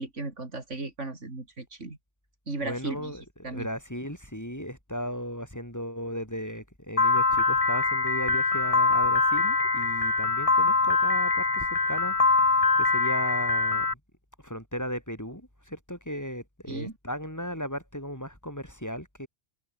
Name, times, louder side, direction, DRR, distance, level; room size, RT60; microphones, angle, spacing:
voice 1, 0.0-2.0 2.5-3.1 3.4-3.7 16.7-16.9, right 3 dB, 90° right, 4.2 m, -36 dB
voice 2, 2.6-12.2 12.4-13.9 14.4-19.3, equal, 15° left, 4.9 m, -36 dB
Piano, 7.0-13.9, left 3 dB, 30° left, 1.4 m, -23 dB
omnidirectional pair, 1.2 m